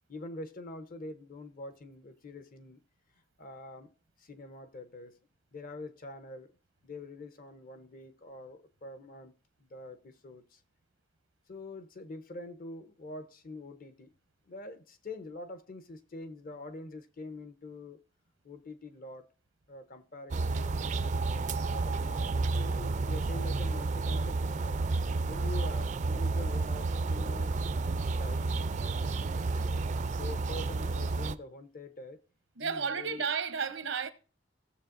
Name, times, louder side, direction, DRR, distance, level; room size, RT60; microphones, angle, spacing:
voice 1, 0.1-2.8 3.4-3.9 4.2-5.2 5.5-6.5 6.8-9.3 9.6-10.6 11.5-14.1 14.5-18.0 18.4-19.3 19.7-24.9 25.3-27.6 28.0-29.0 29.3-29.7 30.1-32.2 32.6-33.3, left 2 dB, 50° left, 0.8 m, -45 dB
sound 1, 20.3-31.3, right 3 dB, 40° right, 0.4 m, -31 dB
voice 2, 32.6-34.1, right 6 dB, 85° right, 0.8 m, -32 dB
17.0 x 7.1 x 2.5 m
head